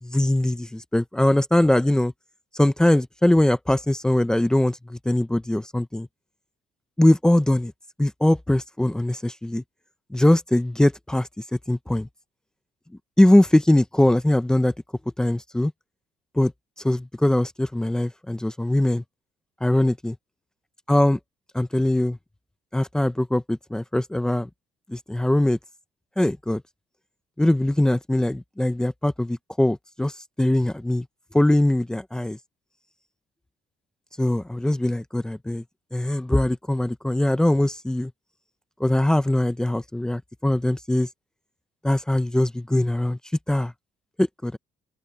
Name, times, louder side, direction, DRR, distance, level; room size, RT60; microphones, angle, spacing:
voice 1, 0.0-2.1 2.5-6.1 7.0-7.7 8.0-9.6 10.1-11.3 11.7-12.1 13.2-14.7 15.2-15.7 16.3-16.5 16.8-19.0 19.6-20.2 20.9-21.2 21.5-22.2 22.7-24.5 24.9-25.6 26.2-26.6 27.4-30.1 30.4-31.1 31.3-32.4 34.2-35.6 35.9-38.1 38.8-41.1 41.8-43.2 43.5-43.7 44.2-44.6, left 1 dB, 5° left, 0.7 m, -21 dB
open air
cardioid pair, 180°, 14 cm